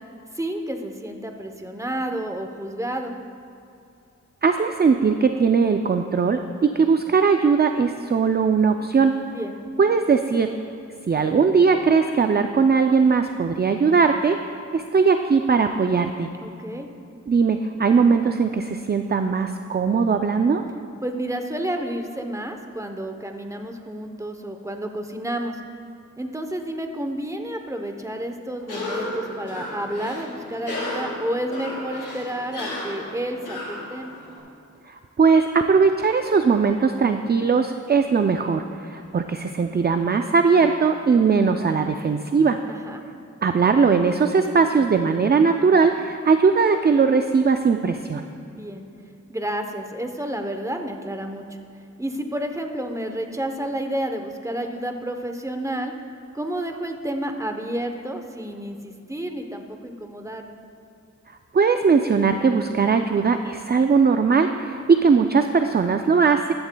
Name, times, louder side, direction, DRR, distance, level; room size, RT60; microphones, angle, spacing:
voice 1, 0.3-3.2 9.3-9.5 16.4-16.9 21.0-25.6 26.2-34.2 42.7-43.0 48.4-48.8 49.3-51.6 52.0-55.9 56.3-60.6, right 1 dB, 10° right, 5 dB, 0.8 m, -30 dB
voice 2, 4.4-9.1 9.8-10.5 11.1-14.4 14.7-16.3 17.3-20.6 34.9-42.6 43.4-48.2 61.5-66.5, right 5 dB, 35° right, 7 dB, 0.4 m, -19 dB
Cough, 28.6-34.4, left 1 dB, 85° left, 2.7 m, -33 dB
15.0 x 11.5 x 2.2 m, 2.6 s
wide cardioid pair, 75°, 30 cm